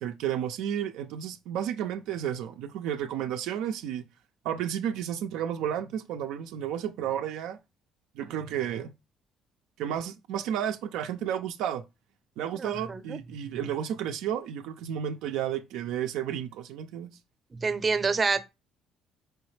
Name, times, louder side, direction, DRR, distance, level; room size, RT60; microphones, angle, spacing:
voice 1, 0.0-4.0 4.4-7.6 8.2-8.9 9.8-11.8 12.4-17.2, right 9 dB, 75° right, 0.4 m, -32 dB
voice 2, 12.6-13.2 17.6-18.5, right 4 dB, 35° right, 0.6 m, -27 dB
4.6 x 3.0 x 3.2 m
supercardioid pair, 70°, 0 cm